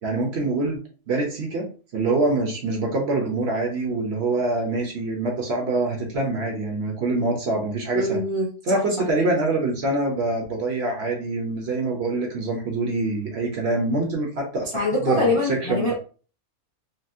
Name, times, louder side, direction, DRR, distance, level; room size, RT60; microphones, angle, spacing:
voice 1, 0.0-0.8 1.1-8.2 8.7-15.9, right 2 dB, 55° right, 0 dB, 0.9 m, -25 dB
voice 2, 7.9-8.8 14.7-15.9, left 1 dB, 35° left, -4 dB, 0.5 m, -24 dB
4.1 x 2.0 x 2.6 m, 0.38 s
omnidirectional pair, 1.5 m